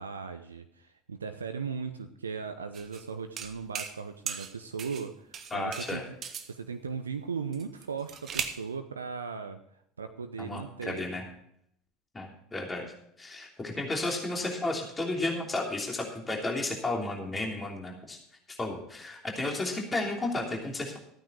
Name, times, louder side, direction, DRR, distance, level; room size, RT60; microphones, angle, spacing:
voice 1, 0.0-6.0 6.5-11.1, right 5 dB, 80° right, 8 dB, 0.7 m, -38 dB
sound 1, 2.7-3.0 3.4-4.0 4.3-5.1 5.3-6.5 7.5-8.6, right 7 dB, 40° right, 1.2 m, -37 dB
voice 2, 5.5-6.0 10.4-11.2 12.1-12.8 13.2-18.2 18.5-21.0, left 2 dB, 20° left, 1 dB, 3.1 m, -33 dB
14.5 x 9.3 x 4.6 m, 0.71 s
figure-of-eight pair, 70°, 0 cm